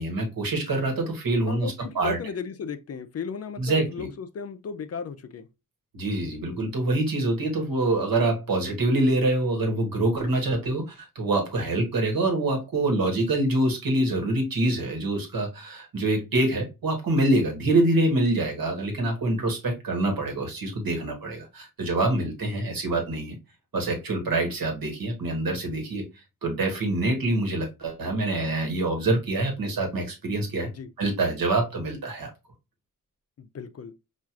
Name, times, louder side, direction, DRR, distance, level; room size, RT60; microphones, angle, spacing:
voice 1, 0.0-2.2 3.6-4.1 5.9-23.4 23.7-26.0 26.4-30.7 31.0-32.3, right 2 dB, 80° right, 1.2 m, -25 dB
voice 2, 1.5-5.5 30.7-30.9 33.4-33.9, left 6 dB, 45° left, 0.4 m, -35 dB
4.4 x 2.4 x 2.4 m
cardioid pair, 70°, 34 cm